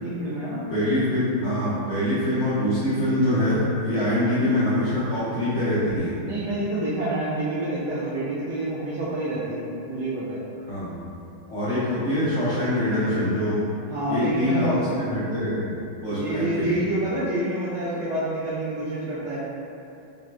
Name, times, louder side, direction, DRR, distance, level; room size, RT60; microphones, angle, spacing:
voice 1, 0.0-0.6 6.2-10.4 13.9-15.1 16.1-19.5, right 1 dB, 80° right, -9 dB, 0.9 m, -28 dB
voice 2, 0.7-6.1 10.7-11.1 11.5-13.6 14.1-14.7 15.0-16.8, left 1 dB, 70° left, -14 dB, 0.7 m, -24 dB
5.4 x 2.2 x 2.4 m, 2.7 s
omnidirectional pair, 2.4 m